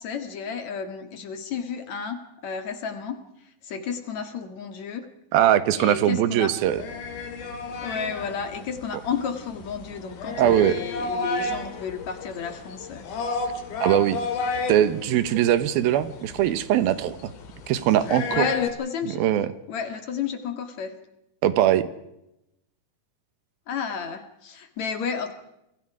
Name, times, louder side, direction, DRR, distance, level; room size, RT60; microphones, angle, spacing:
voice 1, 0.0-3.2 3.6-5.0 5.7-6.5 7.8-13.0 18.3-19.2 19.7-20.9 23.7-25.3, left 6 dB, 55° left, 7 dB, 3.0 m, -32 dB
voice 2, 5.3-6.8 10.4-10.8 13.8-14.2 14.7-17.3 17.7-18.5 19.0-19.5 21.4-21.9, right 11 dB, 90° right, 13 dB, 3.0 m, -21 dB
sound 1, 6.6-18.7, left 3 dB, 80° left, 4.4 m, -32 dB
29.0 x 22.5 x 4.9 m, 0.85 s
omnidirectional pair, 4.2 m